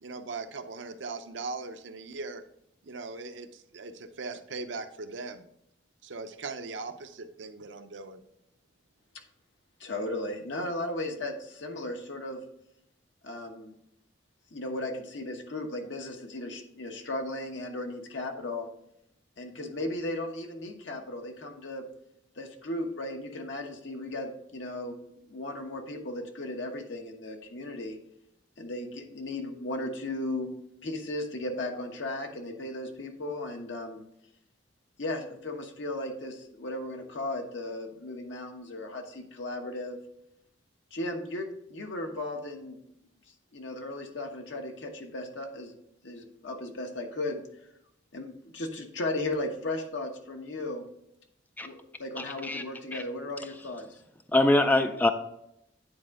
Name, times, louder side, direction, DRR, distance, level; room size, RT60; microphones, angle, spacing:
voice 1, 0.0-2.4 2.8-5.5 6.0-8.2, right 3 dB, 75° right, 0.6 m, -39 dB
voice 2, 9.8-12.4 13.2-13.7 14.5-18.7 19.4-21.8 22.4-28.0 28.6-30.5 30.8-34.0 35.0-40.0 40.9-42.8 43.5-45.7 46.0-47.4 48.1-50.9 51.6-53.9, left 1 dB, 75° left, 1.1 m, -36 dB
voice 3, 52.2-52.6 52.9-53.0 54.3-55.1, left 2 dB, 10° left, 0.3 m, -24 dB
9.5 x 4.3 x 3.6 m
head